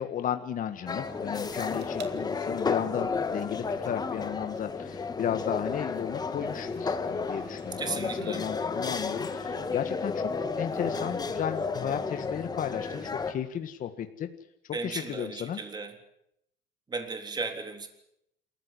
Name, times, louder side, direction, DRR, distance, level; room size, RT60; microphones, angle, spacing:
voice 1, 0.0-14.3 14.8-15.6, left 9 dB, 45° left, 8 dB, 1.7 m, -34 dB
sound 1, 0.9-13.3, left 4 dB, 20° left, 1.6 m, -32 dB
sound 2, 1.6-2.2 2.6-3.0 4.6-4.7 7.3-7.8 8.1-8.4 9.2-10.3 10.8-12.3 12.8-13.3 13.7-13.8, right 10 dB, 65° right, 2.4 m, -50 dB
voice 2, 7.8-8.4 14.7-15.9 16.9-17.9, right 4 dB, 20° right, 6 dB, 3.5 m, -35 dB
27.5 x 15.0 x 9.7 m, 0.78 s
cardioid pair, 145°, 19 cm